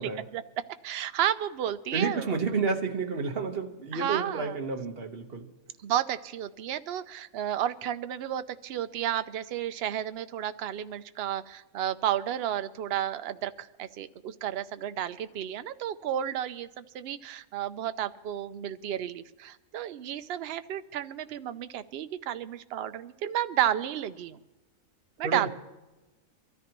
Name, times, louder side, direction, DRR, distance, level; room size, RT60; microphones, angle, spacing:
voice 1, 0.0-2.4 3.9-4.6 5.8-24.4 25.2-25.5, right 11 dB, 60° right, 0.7 m, -32 dB
voice 2, 1.9-5.5 25.2-25.5, right 4 dB, 45° right, 1.3 m, -30 dB
23.5 x 13.5 x 3.0 m
omnidirectional pair, 1.4 m